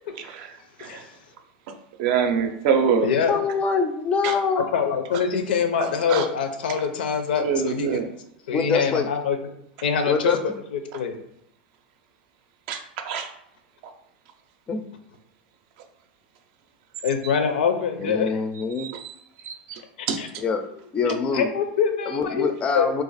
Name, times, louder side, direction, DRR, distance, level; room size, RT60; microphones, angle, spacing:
voice 1, 0.8-1.1 3.0-3.4 4.6-8.0 8.5-9.4 9.8-11.2 17.0-18.4 20.2-20.3 21.0-22.5 22.7-22.9, left 6 dB, 85° left, 6 dB, 0.5 m, -24 dB
voice 2, 2.0-3.0 4.2-4.3 6.1-6.2 7.4-8.0 12.7-13.3 18.8-18.9 19.5-19.8 20.1-20.2, right 7 dB, 55° right, 6 dB, 0.5 m, -24 dB
voice 3, 3.3-4.7 8.5-9.1 10.0-10.4 14.7-14.8 18.0-18.9 20.4-20.6 20.9-21.5 22.1-23.0, left 5 dB, 25° left, 8 dB, 0.3 m, -24 dB
2.5 x 2.3 x 4.0 m, 0.76 s
supercardioid pair, 140°, 5 cm